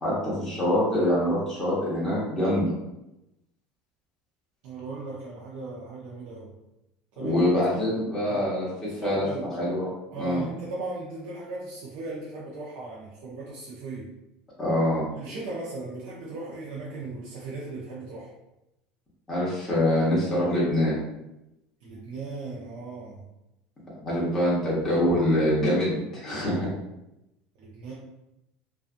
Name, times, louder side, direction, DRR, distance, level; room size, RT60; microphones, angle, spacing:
voice 1, 0.0-2.7 7.2-9.2 9.6-9.9 10.1-10.4 14.6-15.1 19.3-21.0 24.0-26.7, left 1 dB, 10° left, -9 dB, 0.8 m, -25 dB
voice 2, 4.6-6.5 7.2-7.4 7.7-7.9 8.3-8.4 8.9-9.5 10.1-14.1 15.1-18.3 21.8-23.2 27.6-27.9, right 3 dB, 50° right, -6 dB, 0.5 m, -37 dB
2.5 x 2.3 x 2.5 m, 0.90 s
cardioid pair, 170°, 4 cm